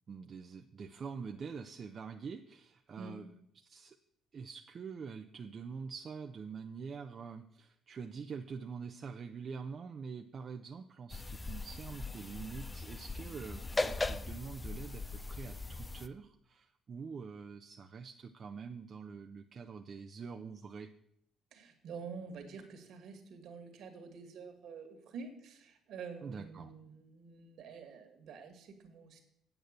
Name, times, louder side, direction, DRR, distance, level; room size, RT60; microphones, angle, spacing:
voice 1, 0.1-3.2 3.6-4.0 4.3-20.9 26.2-26.7, right 5 dB, 45° right, 5 dB, 0.8 m, -45 dB
sound 1, 11.1-16.1, left 3 dB, 20° left, 0.7 m, -39 dB
voice 2, 21.5-29.2, right 5 dB, 70° right, 6 dB, 2.3 m, -48 dB
9.0 x 7.8 x 6.7 m, 0.73 s
supercardioid pair, 65°, 0 cm